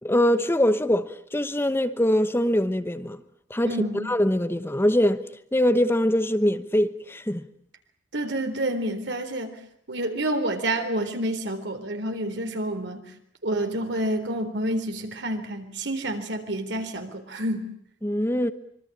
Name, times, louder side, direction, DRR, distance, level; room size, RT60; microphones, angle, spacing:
voice 1, 0.0-3.2 3.5-5.2 5.5-7.5 18.0-18.5, equal, 15° left, 1.0 m, -23 dB
voice 2, 3.6-4.1 8.1-9.6 9.9-13.0 13.4-17.7, right 1 dB, 65° right, 3.9 m, -28 dB
25.5 x 24.0 x 8.7 m
head